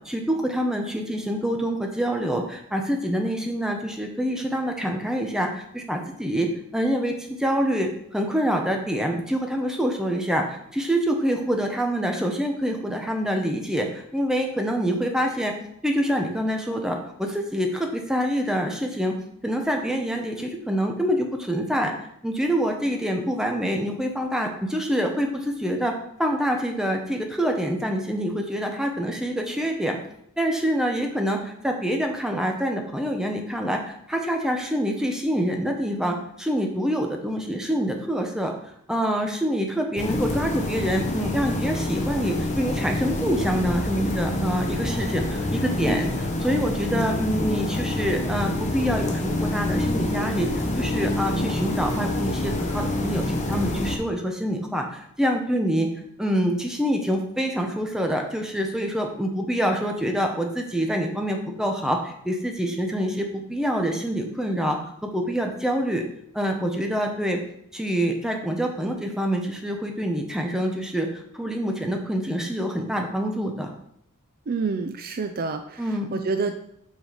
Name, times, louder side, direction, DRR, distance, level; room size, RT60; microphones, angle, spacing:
voice 1, 0.0-15.5 15.8-19.2 19.4-21.9 22.2-30.0 30.4-38.5 38.9-46.1 46.4-50.5 50.8-55.9 56.2-66.0 66.3-67.4 67.7-71.1 71.3-73.7 75.8-76.1, equal, 5° right, 2 dB, 0.9 m, -26 dB
sound 1, 40.0-54.0, left 1 dB, 30° left, 1.0 m, -27 dB
voice 2, 74.5-76.5, right 4 dB, 40° right, 7 dB, 0.5 m, -28 dB
6.3 x 5.0 x 5.0 m, 0.74 s
head